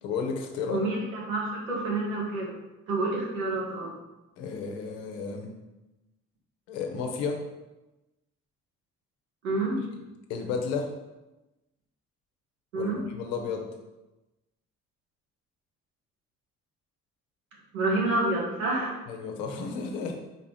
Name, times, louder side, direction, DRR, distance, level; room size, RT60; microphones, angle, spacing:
voice 1, 0.0-0.8 4.4-5.5 6.7-7.5 10.3-10.9 12.7-13.7 19.1-20.2, left 5 dB, 65° left, 3 dB, 1.0 m, -32 dB
voice 2, 0.7-2.5 2.9-3.9 9.4-9.8 12.7-13.0 17.7-19.0, right 2 dB, 80° right, -3 dB, 1.3 m, -28 dB
4.9 x 4.1 x 5.5 m, 1.0 s
figure-of-eight pair, 40°, 40 cm